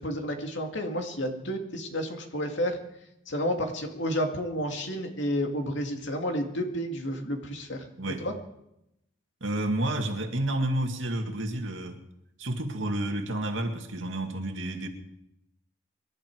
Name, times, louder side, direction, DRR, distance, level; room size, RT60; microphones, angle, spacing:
voice 1, 0.0-2.8 3.3-7.9 8.2-8.3, equal, 70° left, 4 dB, 2.3 m, -31 dB
voice 2, 9.4-12.0 12.4-14.9, right 1 dB, 75° right, 3 dB, 2.2 m, -30 dB
25.5 x 11.5 x 4.7 m, 0.85 s
head